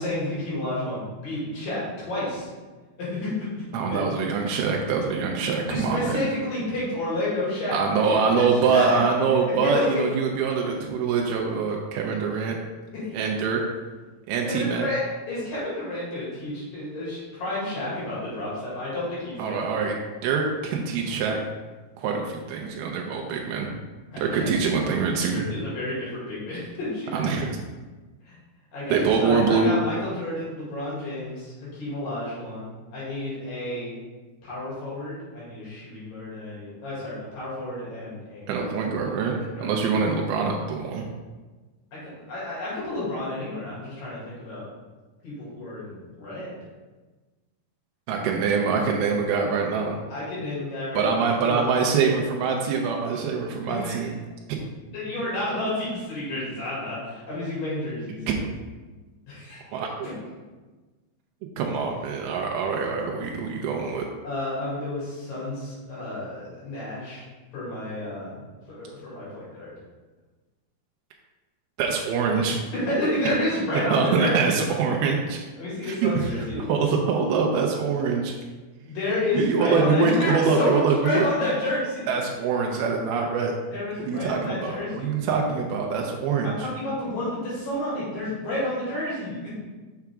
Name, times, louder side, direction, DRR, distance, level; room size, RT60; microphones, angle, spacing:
voice 1, 0.0-2.5 3.0-3.5 3.8-4.0 5.7-7.8 8.0-8.4 8.7-9.0 9.6-10.0 12.9-13.1 14.5-19.9 24.1-24.5 25.3-27.2 28.3-28.4 28.7-33.9 34.4-38.5 39.6-39.8 41.9-44.7 45.2-46.6 50.1-51.7 53.7-54.0 54.9-58.2 59.3-59.6 60.0-60.1 64.2-67.2 67.5-68.4 68.7-69.7 72.7-74.6 75.6-76.7 78.8-82.0 83.7-85.1 86.4-89.5, left 1 dB, 60° left, -8 dB, 4.0 m, -30 dB
voice 2, 3.7-6.2 7.7-12.6 13.1-13.6 14.3-14.9 19.4-21.4 22.0-23.7 24.2-25.4 27.1-27.8 28.9-29.7 38.5-39.3 39.6-41.1 48.1-50.0 50.9-54.1 54.5-54.6 58.3-58.5 59.7-59.9 61.6-64.0 71.8-72.6 73.9-75.4 75.8-78.3 79.3-81.3 82.1-83.5 84.0-86.7, right 5 dB, 80° right, 0 dB, 2.5 m, -24 dB
6.8 x 5.8 x 3.6 m, 1.3 s
omnidirectional pair, 4.5 m